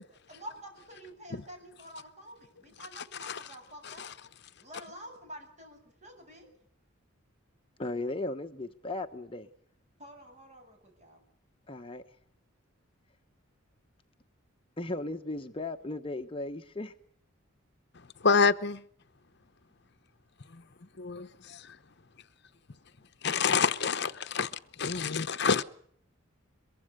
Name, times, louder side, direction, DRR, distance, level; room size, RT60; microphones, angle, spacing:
voice 1, 0.3-4.1 4.6-6.5 10.0-11.2, equal, 35° right, 7.6 m, -48 dB
voice 2, 7.8-9.5 11.7-12.0 14.8-16.9, left 2 dB, 25° left, 1.1 m, -36 dB
voice 3, 18.2-18.8 20.5-20.6 21.0-21.8 23.2-25.6, left 5 dB, 55° left, 0.8 m, -27 dB
23.0 x 23.0 x 6.6 m
head